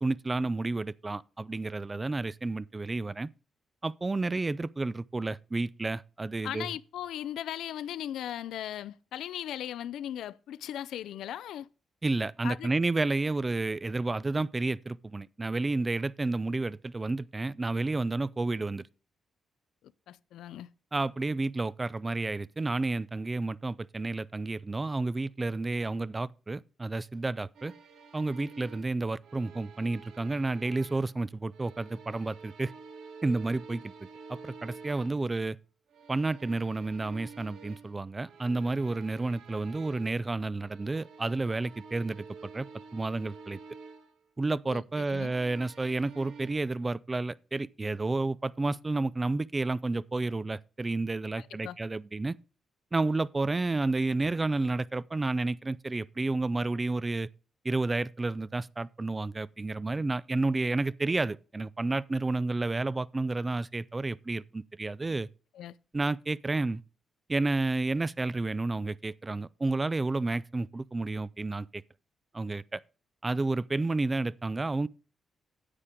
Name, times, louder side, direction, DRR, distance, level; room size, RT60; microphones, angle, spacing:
voice 1, 0.0-3.3 3.8-6.7 12.0-18.8 20.9-27.7 28.1-32.7 33.2-33.9 34.3-35.6 36.1-42.2 42.5-42.7 42.9-43.6 44.4-52.4 52.9-57.3 57.6-65.3 65.9-66.8 67.3-71.8 72.3-72.8 73.2-74.9, right 2 dB, 20° right, 0.4 m, -31 dB
voice 2, 6.4-11.7 12.4-12.7 20.1-20.7 44.7-45.3 51.4-51.8 65.5-65.7, left 11 dB, 90° left, 0.5 m, -38 dB
sound 1, 27.5-31.2 31.5-35.4 35.9-40.3 40.6-44.2 45.0-46.5, right 5 dB, 75° right, 1.5 m, -50 dB
9.8 x 8.4 x 3.7 m
cardioid pair, 110°, 0 cm